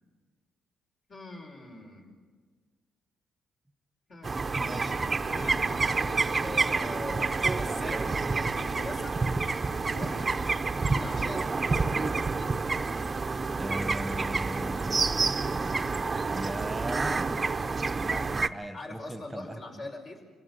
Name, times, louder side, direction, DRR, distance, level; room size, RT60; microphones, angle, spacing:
voice 1, 1.1-2.2 4.1-5.0 5.3-5.7 6.1-8.1 8.6-9.3 9.9-10.3 10.9-11.8 18.7-20.2, left 2 dB, 50° left, 2 dB, 5.1 m, -42 dB
sound 1, 4.2-18.5, right 4 dB, 30° right, 0.8 m, -28 dB
voice 2, 13.6-15.2 16.3-17.3 18.0-19.6, right 1 dB, 5° right, 7 dB, 1.5 m, -38 dB
25.0 x 16.0 x 8.2 m, 1.5 s
cardioid pair, 90°, 0 cm